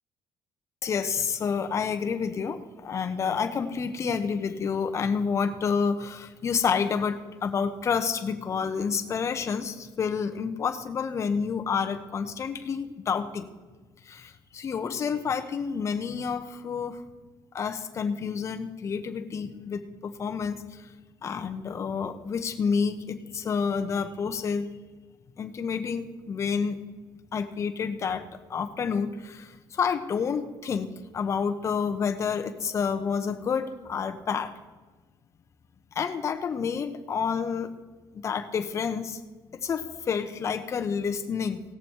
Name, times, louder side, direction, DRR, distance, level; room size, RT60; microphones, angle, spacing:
voice 1, 0.8-13.5 14.0-17.0 17.5-20.9 21.2-24.7 25.4-26.8 27.3-34.5 35.9-37.7 38.1-39.2 39.5-41.6, left 6 dB, 35° left, 7 dB, 1.0 m, -29 dB
18.5 x 7.1 x 4.6 m, 1.3 s
cardioid pair, 135°, 8 cm